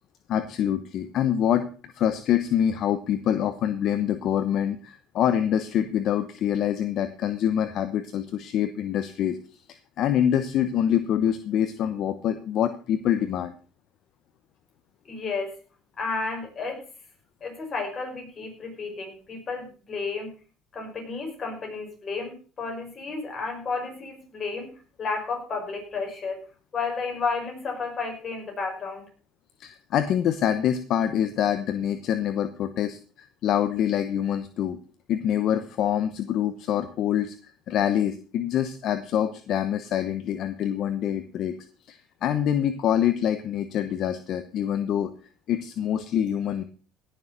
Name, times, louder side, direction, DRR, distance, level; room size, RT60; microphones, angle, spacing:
voice 1, 0.3-9.4 10.0-13.5 29.6-34.8 35.1-41.5 41.9-45.1 45.5-46.6, left 10 dB, 55° left, 10 dB, 1.0 m, -25 dB
voice 2, 15.0-15.6 16.0-16.8 17.4-20.4 20.7-26.4 26.7-29.1, left 4 dB, 30° left, 2 dB, 5.6 m, -32 dB
17.5 x 6.9 x 5.8 m, 0.38 s
cardioid pair, 125°, 0 cm